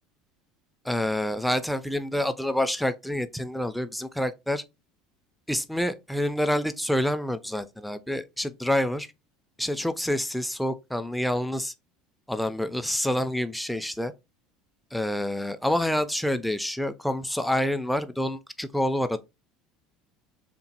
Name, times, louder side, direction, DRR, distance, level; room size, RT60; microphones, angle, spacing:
voice 1, 0.9-4.6 5.5-9.1 9.6-11.7 12.3-14.1 14.9-19.2, left 1 dB, ahead, 0.4 m, -27 dB
2.9 x 2.0 x 2.8 m
hypercardioid pair, 85°, 0 cm